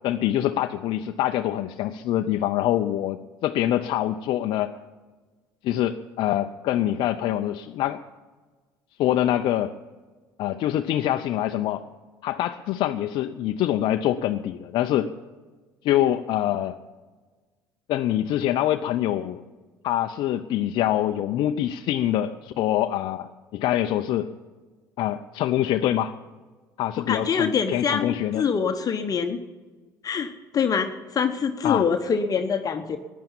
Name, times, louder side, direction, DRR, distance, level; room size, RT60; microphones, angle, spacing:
voice 1, 0.0-4.7 5.6-8.0 9.0-9.7 10.4-11.8 12.2-15.1 15.8-16.7 17.9-19.4 19.8-24.3 25.0-26.1 26.8-28.5 31.6-31.9, left 12 dB, 55° left, 6 dB, 0.6 m, -25 dB
voice 2, 27.1-29.4 30.0-33.0, left 6 dB, 40° left, 7 dB, 1.0 m, -25 dB
15.0 x 10.5 x 7.2 m, 1.3 s
hypercardioid pair, 65°, 10 cm